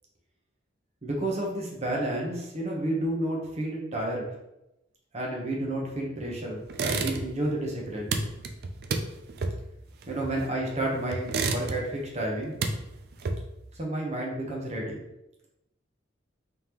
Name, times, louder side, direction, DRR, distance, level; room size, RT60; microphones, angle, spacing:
voice 1, 1.0-4.3 5.1-8.2 10.1-12.6 13.8-15.0, right 1 dB, 35° right, -2 dB, 1.0 m, -31 dB
sound 1, 6.7-7.5 7.7-10.7 11.1-12.0 12.3-13.7, right 3 dB, 55° right, 0.4 m, -31 dB
3.8 x 3.4 x 3.0 m, 0.89 s
head